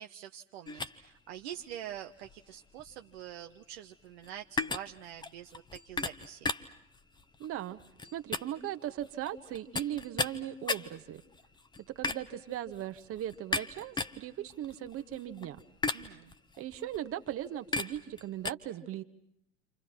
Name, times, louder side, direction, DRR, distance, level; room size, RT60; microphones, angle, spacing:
voice 1, 0.0-6.5 15.9-16.3, right 11 dB, 55° right, 5 dB, 1.3 m, -45 dB
sound 1, 0.7-18.5, left 3 dB, 10° left, 1.3 m, -38 dB
voice 2, 7.4-7.8 8.1-11.2 11.9-15.6 16.6-19.0, right 11 dB, 35° right, 8 dB, 1.8 m, -38 dB
29.5 x 27.5 x 6.0 m, 0.76 s
figure-of-eight pair, 85°, 39 cm